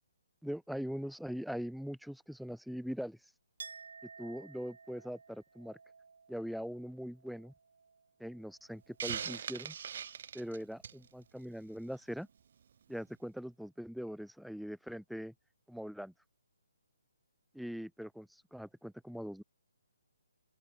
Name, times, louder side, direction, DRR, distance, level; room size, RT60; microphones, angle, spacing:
voice 1, 0.4-3.2 4.2-5.8 6.3-7.5 8.2-9.8 10.3-12.3 12.9-15.3 15.7-16.1 17.5-19.4, equal, ahead, 1.2 m, -41 dB
Chink clink, 3.6-9.1 9.4-10.3, right 5 dB, 70° right, 4.8 m, -55 dB
Hiss, 9.0-11.1, right 8 dB, 35° right, 2.0 m, -40 dB
open air
hypercardioid pair, 180°, 0 cm